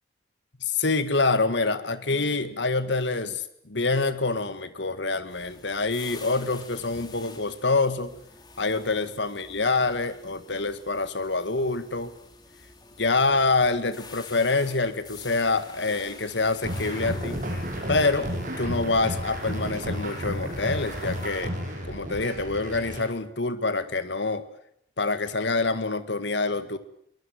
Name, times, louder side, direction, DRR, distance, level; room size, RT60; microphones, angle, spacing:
voice 1, 0.6-8.1 8.6-12.1 13.0-17.4 17.9-18.3 18.6-21.6 21.9-24.4 25.0-26.8, left 3 dB, 75° left, 12 dB, 1.9 m, -26 dB
sound 1, 5.3-21.5, left 3 dB, 20° left, 3.3 m, -48 dB
sound 2, 16.6-23.0, equal, 45° right, 7.3 m, -32 dB
23.0 x 20.5 x 9.7 m, 0.70 s
head